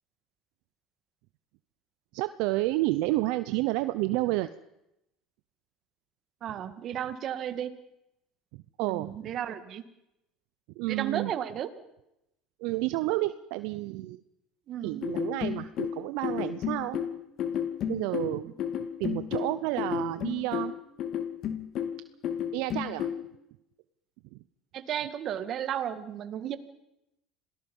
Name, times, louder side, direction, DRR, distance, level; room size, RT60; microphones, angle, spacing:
voice 1, 2.1-4.5 8.5-9.3 10.8-11.3 12.6-14.2 14.8-17.0 17.9-18.5 19.0-20.7 22.5-23.1 24.3-24.4, right 18 dB, 75° right, 13 dB, 0.7 m, -30 dB
voice 2, 6.4-7.7 8.8-9.8 10.9-11.7 14.7-15.0 24.7-26.6, right 10 dB, 50° right, 11 dB, 1.9 m, -33 dB
sound 1, 15.0-23.2, left 9 dB, 55° left, 2.2 m, -32 dB
27.0 x 18.5 x 5.5 m, 0.86 s
supercardioid pair, 95°, 0 cm